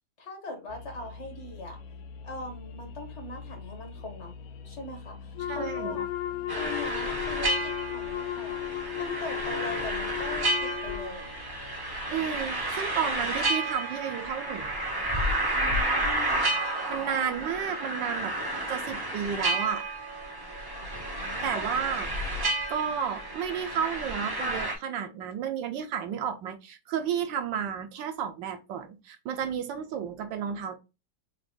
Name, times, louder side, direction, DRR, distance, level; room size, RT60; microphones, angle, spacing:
voice 1, 0.2-1.8 2.2-4.3 4.6-6.1 6.6-8.6 9.0-11.3 15.5-16.5 21.5-21.6, left 2 dB, 50° left, 0.9 m, -40 dB
sound 1, 0.7-13.5, left 5 dB, 85° left, 1.4 m, -46 dB
Wind instrument woodwind instrument, 5.4-11.1, left 11 dB, 70° left, 1.2 m, -34 dB
voice 2, 5.5-6.0 12.1-14.9 16.9-18.3 18.7-19.9 21.4-22.1 22.7-30.8, right 8 dB, 75° right, 1.2 m, -32 dB
sound 2, 6.5-24.7, right 1 dB, 25° right, 0.4 m, -31 dB
4.0 x 2.5 x 3.5 m
omnidirectional pair, 2.2 m